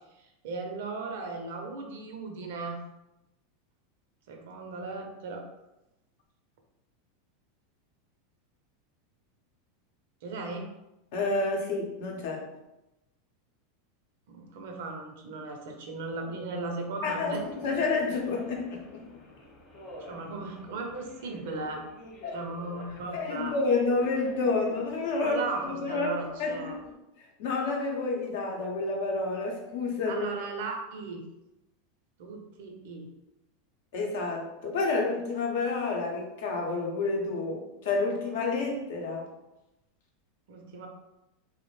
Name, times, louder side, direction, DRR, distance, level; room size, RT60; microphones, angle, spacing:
voice 1, 0.4-2.8 4.3-5.5 10.2-10.7 14.3-17.7 20.1-21.8 22.3-23.5 25.2-26.8 30.1-31.2 32.2-33.1 40.5-40.9, right 3 dB, 70° right, 3 dB, 0.5 m, -37 dB
voice 2, 11.1-12.5 17.0-19.0 22.2-22.4 22.9-26.1 26.4-26.9 27.2-30.3 33.9-39.3, left 3 dB, 70° left, 0 dB, 0.7 m, -29 dB
Subway metro underground, 17.2-26.9, equal, 30° left, 0.9 m, -47 dB
2.4 x 2.0 x 3.1 m, 0.94 s
supercardioid pair, 120°, 0 cm